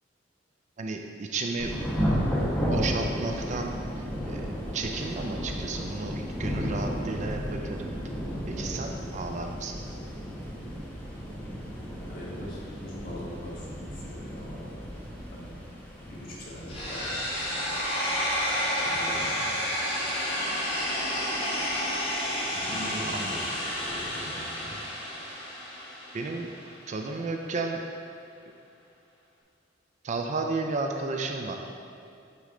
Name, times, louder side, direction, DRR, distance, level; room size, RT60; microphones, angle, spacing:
voice 1, 0.8-1.9 2.6-4.5 4.7-7.9 8.5-9.8 23.1-23.4 26.1-26.5 26.9-27.8 30.0-31.5, right 3 dB, 40° right, 3 dB, 0.4 m, -33 dB
Thunder / Rain, 1.6-17.8, equal, 10° left, 0.9 m, -33 dB
voice 2, 11.8-13.7 13.9-14.9 15.3-15.5 16.0-17.2 18.8-19.5 22.5-24.7, equal, 50° left, -5 dB, 1.3 m, -41 dB
sound 1, 16.7-26.7, equal, 30° left, 1.4 m, -30 dB
8.3 x 3.1 x 3.7 m, 2.5 s
head